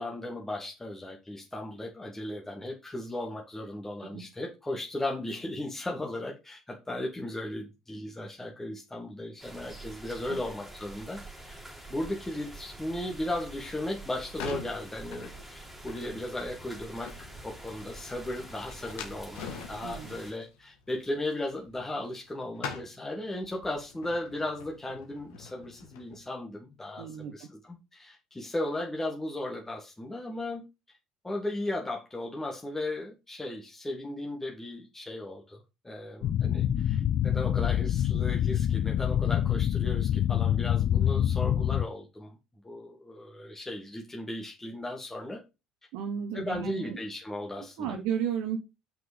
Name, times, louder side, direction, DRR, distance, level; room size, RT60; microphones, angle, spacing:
voice 1, 0.0-11.6 11.9-30.6 31.2-42.4 42.6-45.4 46.3-47.9, left 1 dB, 15° left, 2.0 m, -36 dB
sound 1, 9.4-20.3, right 2 dB, 5° right, 3.2 m, -46 dB
sound 2, 14.0-22.3 22.5-26.2, left 6 dB, 70° left, 1.9 m, -44 dB
voice 2, 19.8-20.2 27.0-27.5 45.9-47.0 47.8-48.6, right 8 dB, 65° right, 0.9 m, -33 dB
sound 3, 36.2-41.8, left 10 dB, 50° left, 0.5 m, -26 dB
5.9 x 5.4 x 5.2 m
hypercardioid pair, 65°, 3 cm